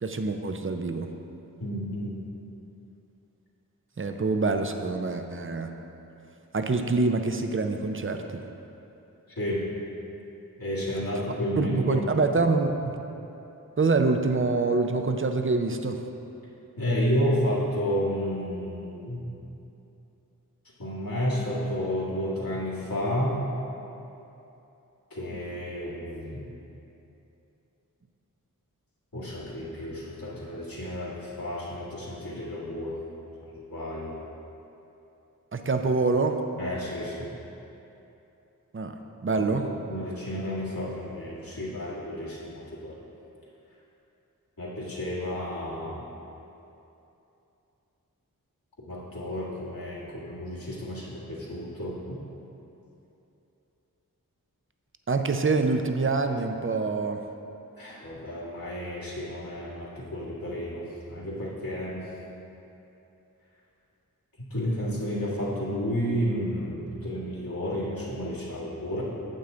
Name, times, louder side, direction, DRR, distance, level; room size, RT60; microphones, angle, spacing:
voice 1, 0.0-1.1 4.0-5.7 6.5-8.4 11.6-12.9 13.8-16.0 35.5-36.4 38.7-39.6 55.1-57.2, right 3 dB, 35° right, 6 dB, 0.6 m, -25 dB
voice 2, 1.6-2.2 9.3-9.7 10.6-12.0 16.8-19.2 20.8-23.4 25.1-26.4 29.1-33.0 33.4-34.1 36.6-37.3 39.4-43.0 44.6-46.0 48.8-52.2 57.7-62.1 64.5-69.0, equal, 75° left, -8 dB, 1.8 m, -31 dB
9.0 x 7.5 x 3.8 m, 2.9 s
wide cardioid pair, 50°, 35 cm